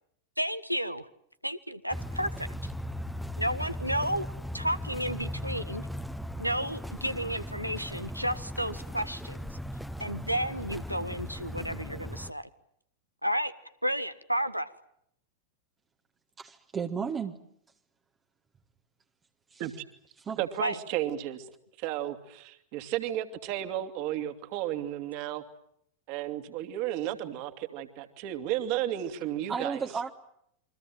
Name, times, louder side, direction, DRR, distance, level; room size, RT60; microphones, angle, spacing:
voice 1, 0.4-1.1 1.4-2.7 3.4-4.3 4.5-5.9 6.4-9.4 10.0-12.5 13.2-13.5 13.8-14.7 20.6-20.8, equal, 90° right, 12 dB, 1.4 m, -32 dB
sound 1, 1.9-12.3, equal, ahead, 1.3 m, -38 dB
voice 2, 16.4-17.4 19.5-19.6 20.3-20.4 29.5-30.1, right 6 dB, 20° right, 3 dB, 1.6 m, -33 dB
voice 3, 20.4-21.5 21.8-25.4 26.1-29.8, right 12 dB, 45° right, 7 dB, 2.8 m, -33 dB
28.5 x 24.0 x 7.6 m, 0.72 s
figure-of-eight pair, 90°, 0 cm